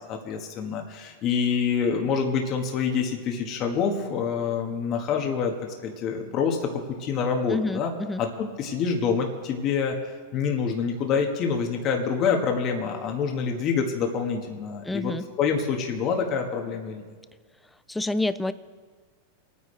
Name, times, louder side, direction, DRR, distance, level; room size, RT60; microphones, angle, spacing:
voice 1, 0.1-5.5 5.8-6.7 7.0-7.9 8.2-9.9 10.3-17.1, left 6 dB, 40° left, 2 dB, 1.7 m, -26 dB
voice 2, 7.5-8.2 14.8-15.3 17.9-18.5, left 2 dB, 5° left, 15 dB, 0.5 m, -28 dB
28.5 x 9.8 x 3.4 m, 1.5 s
hypercardioid pair, 110°, 0 cm